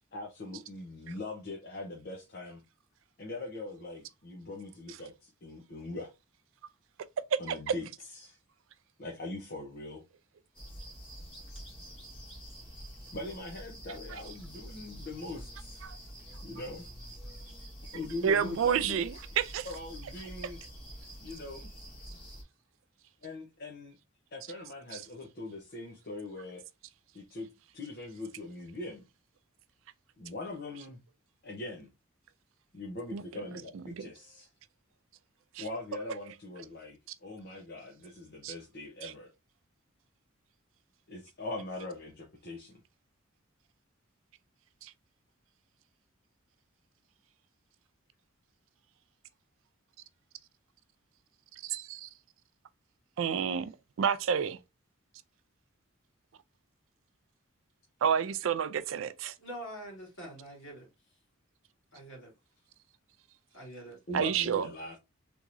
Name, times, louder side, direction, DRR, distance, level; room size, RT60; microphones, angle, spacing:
voice 1, 0.1-2.6 3.2-6.1 7.4-8.4 9.0-10.0 13.1-15.9 16.4-16.9 17.9-19.1 19.6-20.6 21.2-21.7 23.2-24.0 24.3-26.6 27.1-27.5 27.7-29.0 30.2-31.0 31.4-31.9 32.7-34.5 35.6-39.3 41.1-42.7 64.1-65.0, left 2 dB, 50° left, 0.8 m, -41 dB
sound 1, 10.5-22.4, equal, 25° left, 1.4 m, -47 dB
voice 2, 18.2-19.7 33.1-33.2 34.0-34.1 35.6-35.7 38.4-38.5 39.0-39.1 44.8-44.9 51.6-52.1 53.2-54.6 58.0-59.3 64.1-64.7, right 7 dB, 70° right, 0.4 m, -29 dB
voice 3, 59.4-60.9 61.9-62.3 63.5-64.0, right 1 dB, 65° left, 2.2 m, -44 dB
3.6 x 3.0 x 2.6 m
head